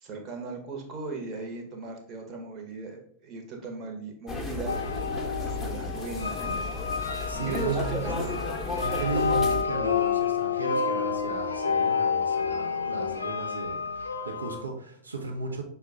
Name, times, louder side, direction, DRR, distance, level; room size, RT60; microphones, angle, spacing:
voice 1, 0.0-4.8 5.3-6.6 7.5-8.2, right 3 dB, 35° right, 2 dB, 1.0 m, -37 dB
sound 1, 4.3-9.6, left 3 dB, 10° left, 0.7 m, -34 dB
sound 2, 4.7-14.6, left 6 dB, 70° left, 0.3 m, -29 dB
voice 2, 7.3-8.3 9.0-15.6, right 4 dB, 80° right, 2 dB, 0.8 m, -35 dB
5.4 x 2.2 x 3.7 m, 0.62 s
figure-of-eight pair, 90°, 0 cm